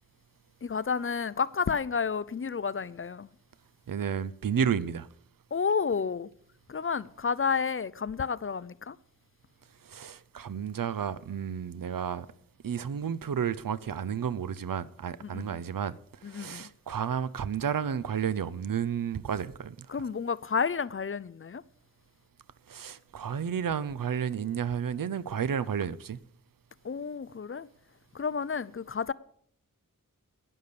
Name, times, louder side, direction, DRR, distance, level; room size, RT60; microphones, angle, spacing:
voice 1, 0.6-3.3 5.5-6.3 6.7-9.0 15.2-15.4 16.2-16.7 19.9-21.6 26.8-27.7 28.1-29.1, left 5 dB, 40° left, 0.5 m, -31 dB
voice 2, 3.9-5.1 9.8-12.3 12.6-20.1 22.7-26.2, right 7 dB, 80° right, 0.6 m, -32 dB
11.0 x 9.7 x 6.8 m
wide cardioid pair, 85°, 33 cm